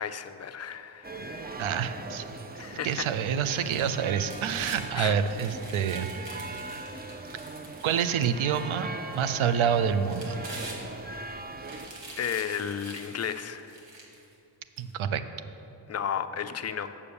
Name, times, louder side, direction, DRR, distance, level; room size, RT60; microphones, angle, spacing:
voice 1, 0.0-1.7 2.6-3.1 5.0-5.1 12.2-13.8 15.9-16.9, left 8 dB, 35° left, 10 dB, 0.4 m, -33 dB
sound 1, 1.0-11.9, right 2 dB, 20° right, 0.5 m, -40 dB
voice 2, 1.6-2.5 2.8-6.1 7.8-8.9 9.1-10.4 14.8-15.2, right 8 dB, 90° right, 11 dB, 0.6 m, -27 dB
sound 2, 3.4-4.8 5.2-8.6 9.1-9.2 9.9-11.2 11.6-14.3 14.8-14.9, right 2 dB, 70° right, 1.7 m, -45 dB
6.9 x 6.8 x 6.9 m, 2.9 s
wide cardioid pair, 85°, 47 cm